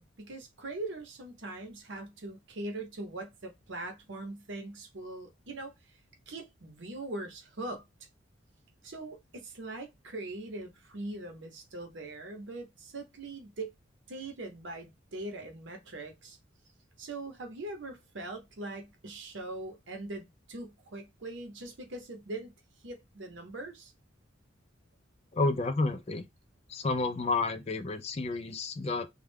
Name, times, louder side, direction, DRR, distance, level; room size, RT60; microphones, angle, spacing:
voice 1, 0.0-5.9 6.3-7.8 8.8-13.7 14.1-16.4 17.0-22.5 22.8-23.9, right 2 dB, 65° right, 0.8 m, -41 dB
voice 2, 25.3-26.3 26.7-29.1, left 3 dB, 30° left, 0.4 m, -30 dB
2.3 x 2.1 x 3.3 m
head